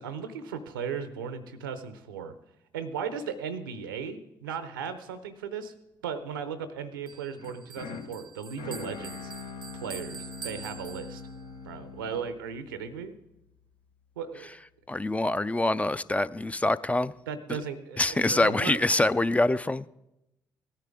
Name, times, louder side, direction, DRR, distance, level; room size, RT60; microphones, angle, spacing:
voice 1, 0.0-2.3 2.7-5.7 6.0-9.3 9.7-11.2 11.6-13.1 14.2-14.6 17.3-18.8, right 6 dB, 85° right, 0.6 m, -36 dB
Bell, 7.1-11.6, right 7 dB, 45° right, 0.6 m, -45 dB
sound 1, 7.4-13.5, left 5 dB, 65° left, 0.8 m, -43 dB
voice 2, 14.9-17.1 18.0-19.8, left 2 dB, 10° left, 0.4 m, -25 dB
16.5 x 9.8 x 3.6 m
figure-of-eight pair, 45°, 11 cm